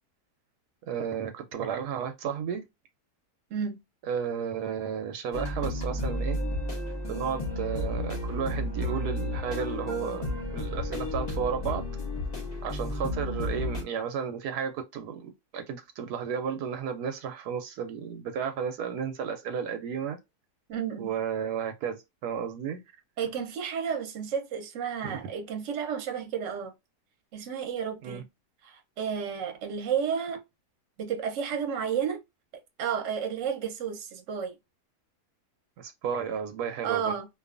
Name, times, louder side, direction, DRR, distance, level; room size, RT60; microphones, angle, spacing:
voice 1, 0.9-2.6 4.1-6.4 7.1-11.8 12.6-20.2 21.0-22.8 25.0-25.2 28.0-28.2 35.8-37.2, right 7 dB, 80° right, 1.1 m, -33 dB
sound 1, 5.3-13.8, left 1 dB, 35° left, 0.7 m, -32 dB
voice 2, 20.7-21.1 23.2-26.7 27.3-28.2 28.6-30.4 31.0-32.2 32.8-34.5 36.8-37.3, right 7 dB, 55° right, 1.0 m, -32 dB
2.6 x 2.3 x 2.4 m
omnidirectional pair, 1.7 m